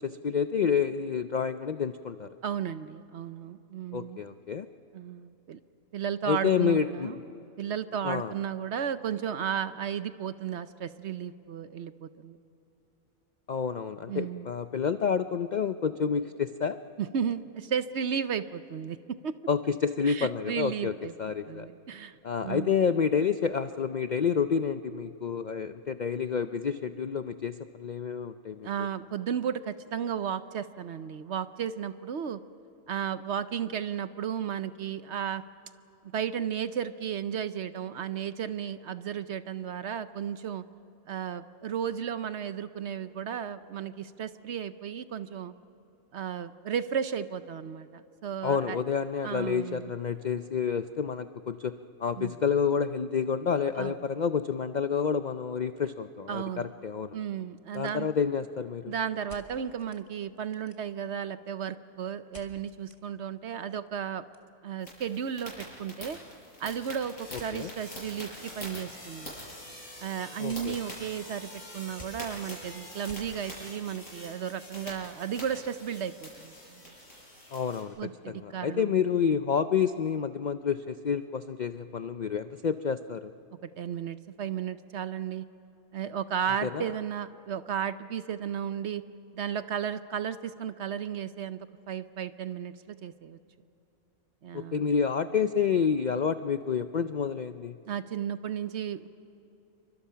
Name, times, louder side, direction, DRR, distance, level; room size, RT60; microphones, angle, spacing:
voice 1, 0.0-2.3 3.9-4.7 6.3-7.2 8.0-8.3 13.5-16.8 19.5-21.7 22.2-28.7 48.4-57.2 57.7-58.9 67.5-67.7 70.4-70.8 77.5-83.3 86.6-86.8 94.5-97.7, left 6 dB, 60° left, 10 dB, 0.4 m, -29 dB
voice 2, 2.4-4.2 4.9-5.6 5.9-7.2 7.6-12.4 14.1-14.5 17.0-19.4 20.0-21.1 21.5-22.2 22.4-22.8 28.6-32.4 32.9-35.4 36.1-40.6 41.1-45.5 46.1-48.8 49.2-49.9 52.2-52.3 53.8-54.0 56.3-56.7 57.1-58.1 58.9-64.2 64.6-66.2 66.6-69.3 70.0-77.0 78.0-78.9 83.8-85.4 85.9-89.0 89.3-91.6 91.9-93.4 94.4-94.8 97.9-99.1, right 8 dB, 60° right, 12 dB, 0.9 m, -34 dB
Revolver Dryfire, 57.6-58.5 59.3-60.0 60.4-61.1 62.3-63.0 63.4-63.5 63.7-65.7 66.0-66.3 67.3-67.6 68.9-69.4 69.8-73.3, left 1 dB, 25° left, 2.0 m, -53 dB
sound 1, 64.8-77.8, left 1 dB, 80° left, 7.9 m, -45 dB
28.5 x 24.5 x 5.7 m, 3.0 s
omnidirectional pair, 1.5 m